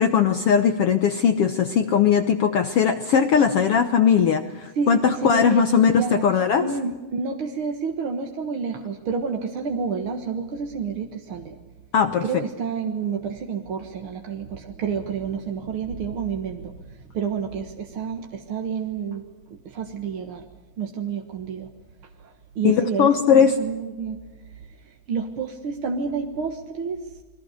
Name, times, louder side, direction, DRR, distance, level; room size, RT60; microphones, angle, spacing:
voice 1, 0.0-6.7 11.9-12.4 22.6-23.5, left 7 dB, 80° left, 9 dB, 1.3 m, -19 dB
voice 2, 4.7-6.3 6.6-11.6 12.2-19.2 19.5-20.5 20.8-21.7 22.2-24.2 24.5-27.2, right 6 dB, 50° right, 4 dB, 1.7 m, -29 dB
29.5 x 22.0 x 6.6 m, 1.3 s
omnidirectional pair, 4.0 m